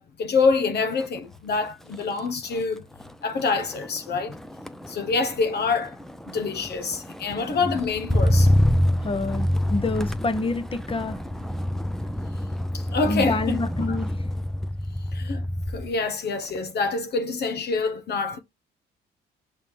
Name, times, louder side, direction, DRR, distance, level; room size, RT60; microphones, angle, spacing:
voice 1, 0.0-2.8 3.2-4.4 4.9-6.0 6.3-8.5 12.7-13.6 13.9-14.0 15.1-15.4 15.7-18.4, left 4 dB, 55° left, 0.8 m, -26 dB
Motor vehicle (road), 0.9-1.2 1.5-16.0 16.4-16.8, left 1 dB, ahead, 0.5 m, -27 dB
voice 2, 9.0-11.2 13.0-14.1, left 3 dB, 25° left, 1.0 m, -27 dB
6.1 x 3.1 x 5.5 m
cardioid pair, 90°, 20 cm